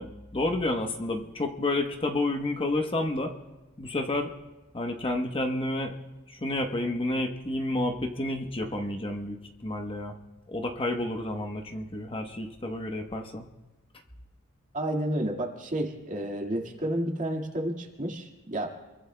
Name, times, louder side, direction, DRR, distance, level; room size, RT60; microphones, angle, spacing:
voice 1, 0.0-3.3 3.8-4.3 4.7-5.9 6.3-10.2 10.5-13.5, left 2 dB, 25° left, 3 dB, 1.0 m, -30 dB
voice 2, 14.7-18.7, right 1 dB, 35° right, 1 dB, 1.9 m, -31 dB
28.5 x 22.5 x 2.2 m, 1.1 s
head